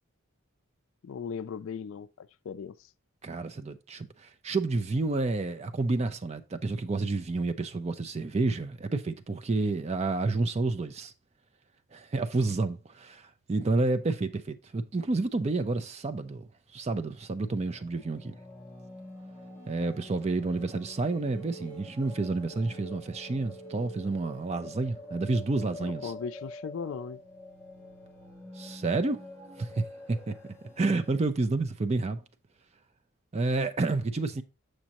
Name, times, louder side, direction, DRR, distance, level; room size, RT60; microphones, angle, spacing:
voice 1, 1.0-2.8 25.8-27.2, left 6 dB, 65° left, 0.3 m, -38 dB
voice 2, 3.2-11.1 11.9-18.4 19.7-26.1 28.6-29.2 29.6-30.4 30.8-32.2 33.3-34.4, right 3 dB, 30° right, 0.4 m, -30 dB
sound 1, 16.8-31.1, left 1 dB, 5° left, 1.8 m, -46 dB
6.4 x 6.2 x 2.9 m
head